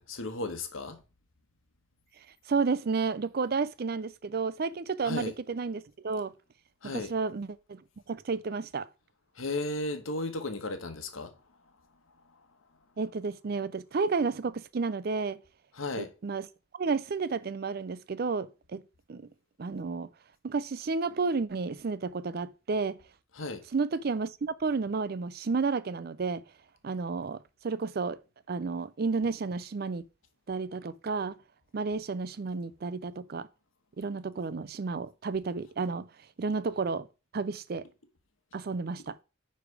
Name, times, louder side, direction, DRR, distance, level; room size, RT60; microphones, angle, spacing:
voice 1, 0.1-1.0 5.0-5.3 6.8-7.1 9.3-11.4 12.3-12.4 15.7-16.1 23.3-23.6, left 2 dB, 80° left, 1.3 m, -35 dB
voice 2, 2.5-6.3 6.8-7.8 8.1-8.9 13.0-15.4 16.0-16.5 16.8-18.8 19.1-19.3 19.6-20.1 20.4-23.0 23.7-26.4 26.8-28.2 28.5-30.1 30.5-31.4 31.7-33.5 34.0-36.1 36.4-37.1 37.3-37.8 38.5-39.2, right 4 dB, 50° right, 0.4 m, -31 dB
9.8 x 3.4 x 4.8 m
head